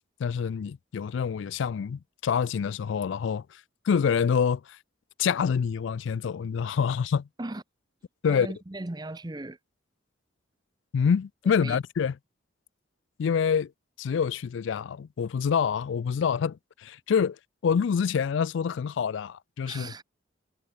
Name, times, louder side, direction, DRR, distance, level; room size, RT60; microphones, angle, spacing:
voice 1, 0.2-3.4 3.9-4.8 5.2-7.3 8.2-8.5 10.9-12.1 13.2-13.7 14.0-17.4 17.6-19.9, left 6 dB, 70° left, 0.3 m, -26 dB
voice 2, 8.3-9.6 11.6-11.8 19.7-20.0, right 2 dB, 20° right, 0.7 m, -37 dB
head